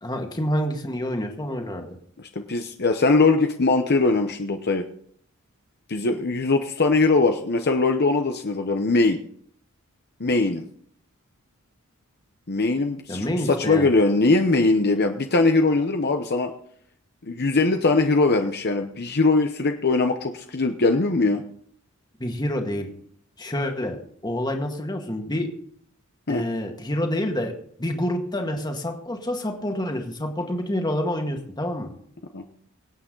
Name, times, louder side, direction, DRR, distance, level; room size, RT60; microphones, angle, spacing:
voice 1, 0.0-1.9 13.1-13.9 22.2-22.9 23.4-25.5 26.3-27.5 27.8-31.9, left 1 dB, 20° left, 3 dB, 1.9 m, -27 dB
voice 2, 2.2-4.8 5.9-9.2 10.2-10.6 12.5-13.3 13.6-16.5 17.2-21.4 26.3-26.4 32.3-32.4, left 3 dB, 50° left, 5 dB, 0.9 m, -21 dB
24.0 x 8.7 x 3.9 m, 0.64 s
head